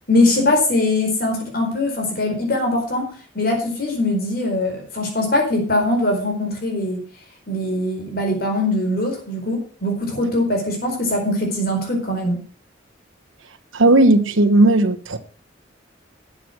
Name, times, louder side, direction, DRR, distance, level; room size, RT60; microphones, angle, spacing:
voice 1, 0.1-7.0 7.5-12.4, left 2 dB, 50° left, 4.5 m, -21 dB
voice 2, 13.7-15.2, right 2 dB, 85° right, 1.3 m, -15 dB
12.5 x 8.1 x 6.1 m
head